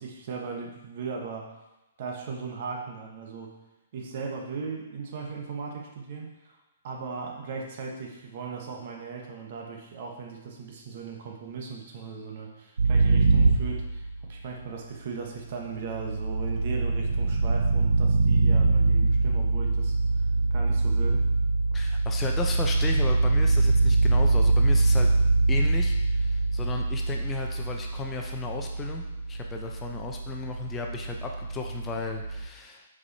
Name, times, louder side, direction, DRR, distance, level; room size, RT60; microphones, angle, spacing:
voice 1, 0.0-1.5 2.0-3.5 3.9-6.6 6.8-21.3, right 5 dB, 55° right, 1 dB, 1.2 m, -38 dB
sound 1, 12.8-14.5 15.6-32.5, right 3 dB, 85° right, 0.6 m, -24 dB
voice 2, 21.7-25.1 25.5-32.9, left 5 dB, 20° left, 2 dB, 0.6 m, -35 dB
5.0 x 4.9 x 4.2 m, 0.98 s
hypercardioid pair, 135°, 0 cm